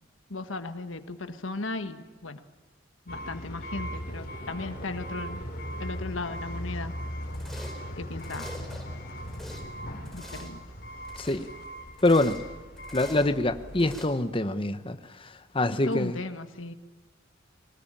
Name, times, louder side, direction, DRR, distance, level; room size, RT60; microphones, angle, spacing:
voice 1, 0.3-2.4 3.1-5.4 5.8-6.9 8.0-8.5 10.1-10.6 15.9-16.7, left 3 dB, 85° left, 1.5 m, -36 dB
sound 1, 3.1-14.0, equal, 50° left, 3.5 m, -38 dB
sound 2, 7.3-7.9 8.2-8.8 9.2-9.6 10.0-10.6 11.0-11.5 11.9-12.5 12.8-13.3 13.8-14.1, left 1 dB, ahead, 4.4 m, -45 dB
voice 2, 11.2-11.5 12.0-12.4 12.9-16.2, left 2 dB, 25° left, 1.0 m, -25 dB
24.0 x 19.0 x 8.8 m
head